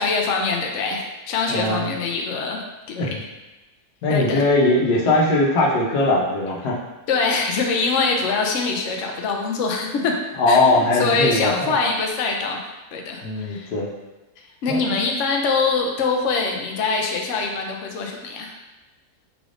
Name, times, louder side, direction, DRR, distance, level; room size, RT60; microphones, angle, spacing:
voice 1, 0.0-3.0 4.1-4.4 7.1-10.1 10.5-12.6 12.9-13.7 14.6-18.5, left 4 dB, 65° left, 1 dB, 0.8 m, -23 dB
voice 2, 1.5-1.9 3.0-3.2 4.0-6.8 10.4-11.7 13.2-13.9 14.7-14.9, left 2 dB, 85° left, -3 dB, 1.4 m, -20 dB
4.8 x 3.3 x 2.5 m, 1.1 s
omnidirectional pair, 1.7 m